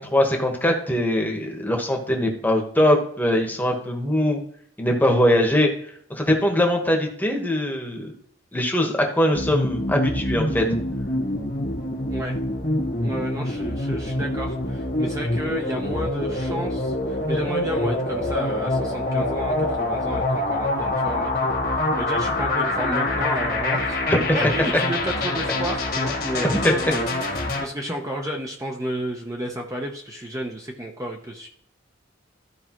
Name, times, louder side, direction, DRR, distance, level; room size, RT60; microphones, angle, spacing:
voice 1, 0.0-4.4 4.8-5.7 6.1-8.1 8.5-10.6 24.1-24.2 26.4-26.7, left 1 dB, 10° left, 2 dB, 1.3 m, -21 dB
sound 1, 9.3-27.6, left 2 dB, 55° left, 1.6 m, -25 dB
voice 2, 13.0-24.0 24.3-26.5 26.9-27.1 27.6-31.5, right 1 dB, 15° right, 0 dB, 0.9 m, -31 dB
13.5 x 4.8 x 3.1 m, 0.65 s
head